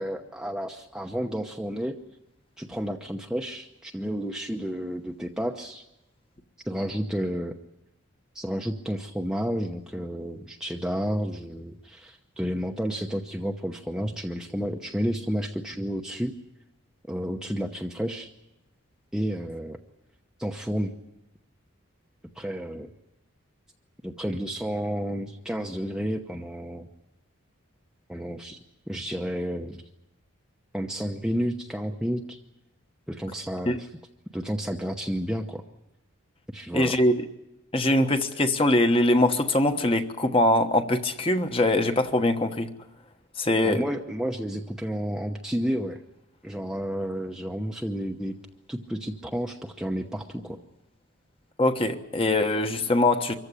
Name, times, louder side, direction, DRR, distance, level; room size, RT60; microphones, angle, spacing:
voice 1, 0.0-2.0 2.6-5.9 6.6-7.5 8.3-16.3 17.1-18.3 19.1-19.8 20.4-20.9 22.4-22.9 24.0-26.9 28.1-28.6 28.9-29.8 30.7-32.4 33.1-33.9 34.3-35.6 36.5-37.0 43.6-46.0 46.4-48.4 48.7-50.6, equal, 5° right, 2 dB, 0.9 m, -31 dB
voice 2, 36.7-37.1 37.7-42.7 43.4-43.8 51.6-53.4, left 1 dB, 25° left, 7 dB, 1.2 m, -22 dB
25.0 x 15.0 x 10.0 m, 0.91 s
head